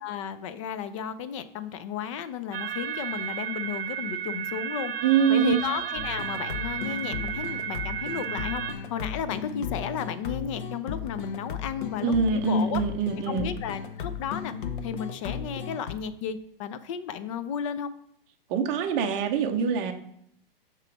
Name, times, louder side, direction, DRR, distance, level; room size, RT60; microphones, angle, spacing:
voice 1, 0.0-4.9 5.3-12.8 13.3-14.5 14.8-17.9, left 8 dB, 35° left, 13 dB, 0.4 m, -34 dB
sound 1, 2.5-8.7, right 9 dB, 70° right, 0.6 m, -33 dB
voice 2, 5.0-5.6 12.0-13.5 18.5-19.9, right 6 dB, 30° right, 4 dB, 0.6 m, -24 dB
sound 2, 6.0-15.9, left 7 dB, 60° left, 0.7 m, -35 dB
6.5 x 3.0 x 5.9 m, 0.70 s
hypercardioid pair, 140°, 29 cm